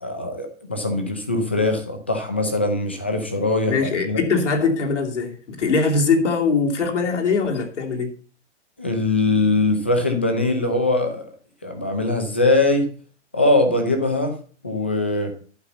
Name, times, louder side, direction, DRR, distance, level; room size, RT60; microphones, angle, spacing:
voice 1, 0.0-4.2 8.8-11.3 11.6-12.9 13.3-14.4 14.6-15.3, left 2 dB, 10° left, 0.4 m, -21 dB
voice 2, 3.7-8.1, left 4 dB, 80° left, 2.8 m, -21 dB
11.5 x 5.6 x 7.9 m
hypercardioid pair, 180°, 35 cm